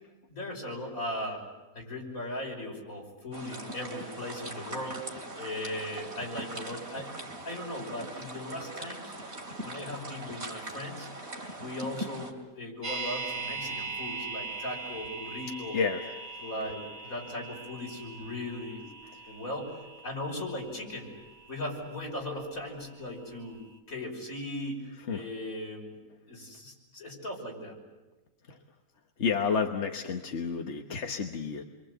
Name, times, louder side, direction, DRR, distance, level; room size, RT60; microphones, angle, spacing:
voice 1, 0.3-1.4 1.7-5.0 5.4-7.1 7.4-9.1 9.6-11.1 11.6-15.8 16.4-18.8 19.3-19.8 20.0-21.1 21.5-23.6 23.9-24.8 25.1-26.0 26.3-27.8, left 1 dB, 70° left, 0 dB, 6.1 m, -38 dB
sound 1, 3.3-12.3, right 1 dB, 50° right, 3.2 m, -41 dB
sound 2, 12.8-22.9 23.2-23.3, right 4 dB, 25° right, 3.1 m, -41 dB
voice 2, 15.7-16.0 19.1-19.3 25.1-25.2 28.5-28.6 29.2-31.6, left 6 dB, 55° left, 3 dB, 1.5 m, -30 dB
28.0 x 23.5 x 8.0 m, 1.1 s
omnidirectional pair, 1.5 m